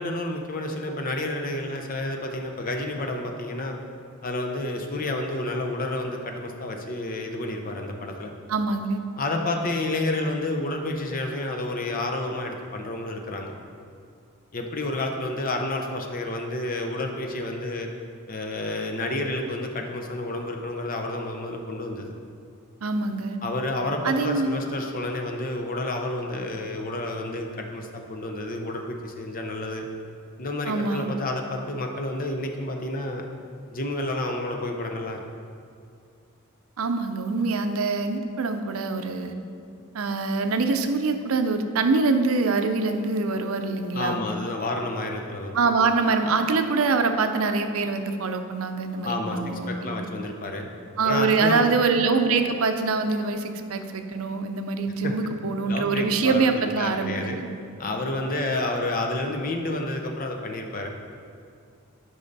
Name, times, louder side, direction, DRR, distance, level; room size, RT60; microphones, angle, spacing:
voice 1, 0.0-3.8 4.2-8.3 9.2-13.5 14.5-17.9 18.3-22.1 23.4-29.8 30.4-33.2 33.7-35.2 43.9-45.9 49.0-50.7 51.0-51.7 55.0-55.1 55.7-57.4 57.8-60.9, left 2 dB, 40° left, 3 dB, 0.7 m, -30 dB
voice 2, 8.5-9.0 22.8-23.4 24.0-24.6 30.7-31.1 36.8-39.3 39.9-44.2 45.5-50.1 51.0-57.5, right 4 dB, 75° right, 7 dB, 0.6 m, -24 dB
8.6 x 5.4 x 4.0 m, 2.4 s
head